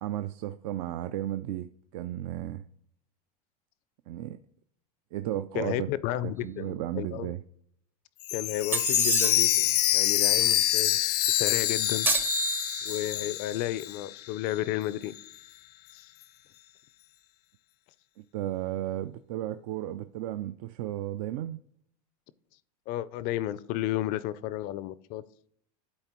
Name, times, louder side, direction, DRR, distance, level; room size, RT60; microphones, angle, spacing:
voice 1, 0.0-2.6 4.1-4.4 5.1-5.9 6.2-7.4 18.2-21.6, right 13 dB, 60° right, 0.4 m, -34 dB
voice 2, 5.6-7.3 8.3-11.0 11.3-12.1 12.8-15.1 15.9-16.1 22.9-25.2, left 13 dB, 50° left, 0.4 m, -32 dB
Chime, 8.2-14.2 14.5-14.6 15.2-15.3, left 13 dB, 90° left, 0.7 m, -26 dB
sound 1, 8.7-9.7 12.1-13.1, right 3 dB, 10° right, 0.5 m, -29 dB
11.5 x 4.1 x 3.0 m
supercardioid pair, 130°, 20 cm